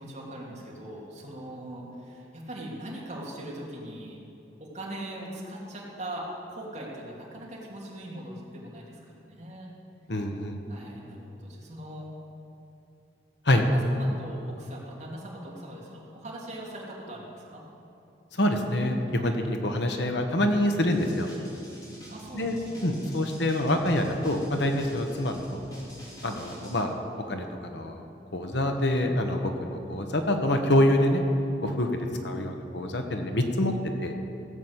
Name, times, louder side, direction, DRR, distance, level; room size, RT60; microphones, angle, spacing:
voice 1, 0.0-4.2 4.6-9.7 10.7-12.1 13.5-17.6 22.1-23.1 32.0-32.1, right 1 dB, 40° right, -4 dB, 2.8 m, -41 dB
voice 2, 10.1-10.6 13.4-13.6 18.3-21.3 22.3-22.5 22.8-25.6 26.2-26.9 27.3-28.1 28.3-31.2 31.6-33.7 34.0-34.1, left 1 dB, 65° left, 4 dB, 1.2 m, -26 dB
sound 1, 20.9-26.8, equal, 20° left, 2.8 m, -46 dB
16.0 x 7.4 x 8.1 m, 2.8 s
head